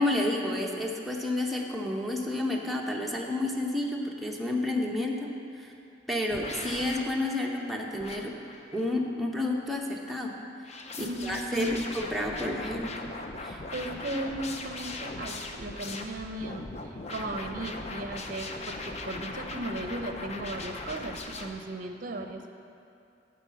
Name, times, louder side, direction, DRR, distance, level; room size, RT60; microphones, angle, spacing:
voice 1, 0.0-5.7 6.1-8.3 8.7-10.3 11.0-13.0 13.4-13.6, left 1 dB, ahead, -2 dB, 0.8 m, -30 dB
voice 2, 4.7-5.1 11.0-11.9 13.5-22.5, right 1 dB, 50° right, 5 dB, 0.6 m, -36 dB
sound 1, 6.3-7.0 8.0-9.0 10.6-21.5, left 3 dB, 35° left, 0.6 m, -39 dB
9.5 x 4.3 x 7.4 m, 2.6 s
head